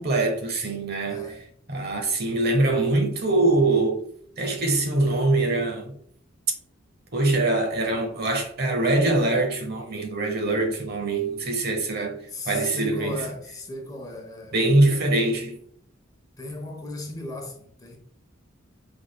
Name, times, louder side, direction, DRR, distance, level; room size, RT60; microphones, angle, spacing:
voice 1, 0.0-1.3 1.7-4.0 4.4-5.9 7.1-12.2 12.4-13.3 14.5-15.6, right 2 dB, 55° right, 1.2 m, -23 dB
voice 2, 12.3-15.0 16.4-18.0, left 2 dB, 20° left, 1.0 m, -36 dB
5.8 x 3.8 x 2.2 m
head